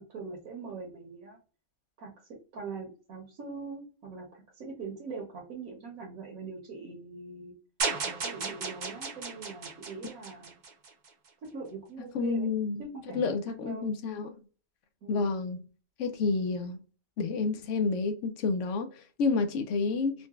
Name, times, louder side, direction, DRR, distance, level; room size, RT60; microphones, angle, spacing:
voice 1, 0.0-1.4 2.0-7.5 8.0-10.6 11.4-12.5 12.8-13.9 15.0-15.3, right 4 dB, 75° right, 1.3 m, -42 dB
sound 1, 7.8-11.1, right 4 dB, 45° right, 0.6 m, -35 dB
voice 2, 12.1-14.3 15.1-15.6 16.0-16.8 17.2-20.3, left 4 dB, 70° left, 0.8 m, -30 dB
3.8 x 2.1 x 2.3 m
omnidirectional pair, 1.5 m